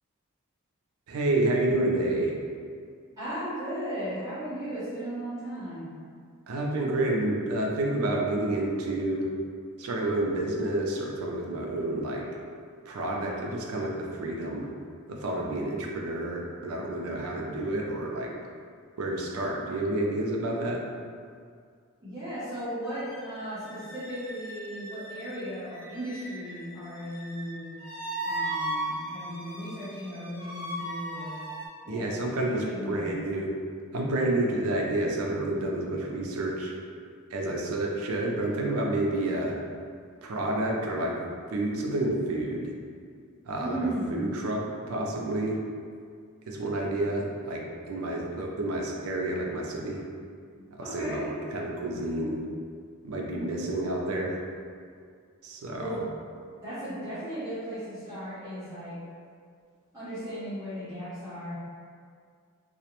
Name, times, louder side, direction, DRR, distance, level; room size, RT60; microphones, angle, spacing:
voice 1, 1.1-2.4 6.5-9.3 9.8-12.3 12.9-14.7 15.1-18.4 19.0-20.8 31.9-33.5 33.9-36.7 37.3-39.6 40.2-41.2 41.5-42.7 43.5-44.6 44.9-45.6 46.5-50.0 50.8-52.5 53.0-54.4 55.4-56.0, right 1 dB, 85° right, -1 dB, 0.4 m, -29 dB
voice 2, 3.1-5.9 22.0-27.7 28.2-31.5 31.9-33.1 43.5-44.2 50.6-51.3 55.8-56.0 56.6-59.0 59.9-61.5, equal, 20° right, -15 dB, 0.6 m, -36 dB
sound 1, 22.8-31.7, right 1 dB, 60° left, 0.6 m, -37 dB
2.4 x 2.1 x 2.9 m, 2.2 s
head